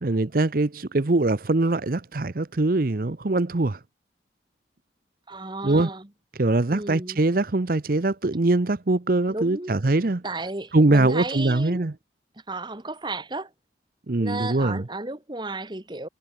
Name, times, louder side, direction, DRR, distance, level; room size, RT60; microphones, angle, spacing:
voice 1, 0.0-3.8 5.6-5.9 6.4-10.2 10.7-11.9 14.1-14.8, right 2 dB, 50° right, 0.8 m, -22 dB
voice 2, 5.3-6.1 6.7-7.2 9.3-9.7 10.2-11.9 12.5-13.5 14.2-16.1, right 2 dB, 25° right, 1.5 m, -33 dB
head